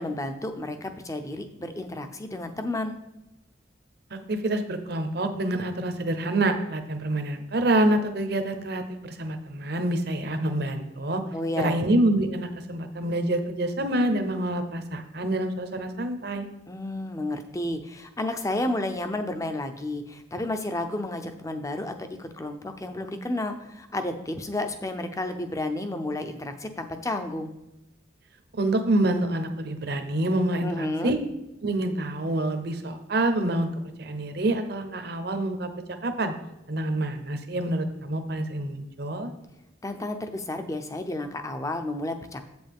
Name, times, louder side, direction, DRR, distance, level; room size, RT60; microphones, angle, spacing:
voice 1, 0.0-2.9 11.3-11.8 16.7-27.5 30.6-31.2 39.8-42.4, left 1 dB, 15° left, 7 dB, 0.6 m, -31 dB
voice 2, 4.3-11.2 11.6-16.5 28.5-31.2 31.6-33.7 34.0-35.7 36.0-36.3 36.7-39.3, right 1 dB, 55° right, 8 dB, 0.8 m, -27 dB
7.9 x 7.8 x 3.5 m, 0.92 s
head